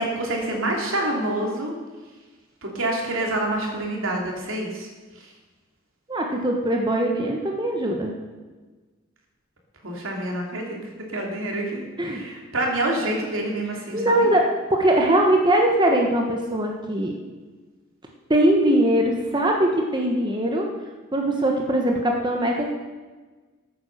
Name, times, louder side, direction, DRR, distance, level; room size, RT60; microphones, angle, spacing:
voice 1, 0.0-1.7 2.6-4.9 5.1-5.3 9.8-10.8 11.1-14.3, right 1 dB, 80° right, 0 dB, 2.9 m, -27 dB
voice 2, 6.1-8.1 12.0-12.2 13.9-14.4 14.7-17.1 18.3-20.7 21.1-22.7, right 1 dB, 20° right, 1 dB, 1.2 m, -21 dB
14.0 x 8.8 x 6.6 m, 1.3 s
head